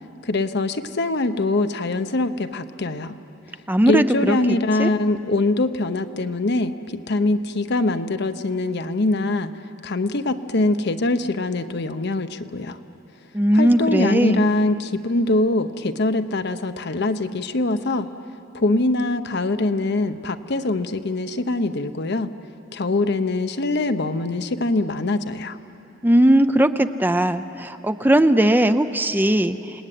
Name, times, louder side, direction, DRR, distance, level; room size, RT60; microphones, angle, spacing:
voice 1, 0.2-3.2 3.9-9.5 9.8-12.8 13.5-18.1 18.5-22.3 22.7-25.6, left 2 dB, 55° left, 9 dB, 0.9 m, -23 dB
voice 2, 3.7-4.4 4.8-4.9 13.3-14.5 26.0-29.8, right 1 dB, 10° right, 10 dB, 0.5 m, -18 dB
29.0 x 19.0 x 9.3 m, 3.0 s
head